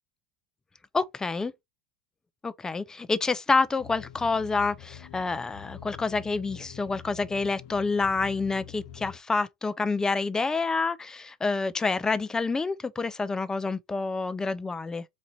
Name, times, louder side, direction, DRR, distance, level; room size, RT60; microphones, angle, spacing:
voice 1, 0.9-1.5 2.4-15.0, left 4 dB, 15° left, 0.5 m, -28 dB
sound 1, 3.8-9.2, left 10 dB, 65° left, 0.6 m, -46 dB
4.2 x 2.5 x 4.3 m
hypercardioid pair, 90°, 4 cm